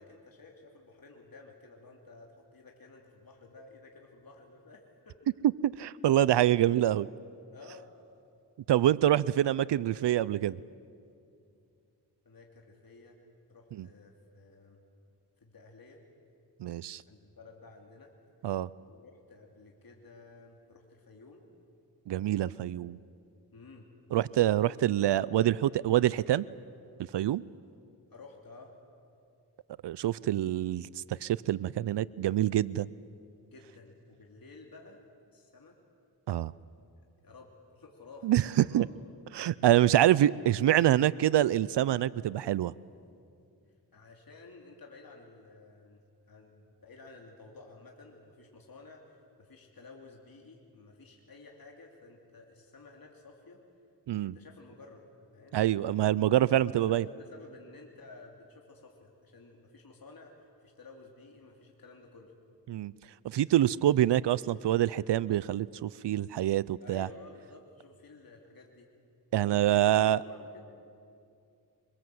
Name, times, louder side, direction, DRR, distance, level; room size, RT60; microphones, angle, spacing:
voice 1, 0.0-5.2 7.5-7.9 12.2-14.8 15.4-16.0 17.1-18.1 18.8-21.4 23.5-23.9 24.8-24.9 28.1-28.7 33.4-35.0 35.3-35.8 37.2-39.1 43.9-46.0 46.3-53.6 54.2-55.0 55.3-55.6 56.4-62.3 66.8-68.9 69.7-69.9 70.2-70.6, left 3 dB, 55° left, 0 dB, 2.9 m, -53 dB
voice 2, 5.6-7.1 8.7-10.6 13.8-13.9 16.6-17.0 18.4-18.7 22.1-23.0 24.1-26.5 27.1-27.4 29.8-32.9 36.3-36.5 38.2-38.9 39.3-42.7 54.1-54.3 55.5-57.0 62.7-62.9 63.2-67.1 69.3-70.2, right 12 dB, 75° right, 20 dB, 0.5 m, -26 dB
24.5 x 22.5 x 7.8 m, 2.5 s
cardioid pair, 60°, 42 cm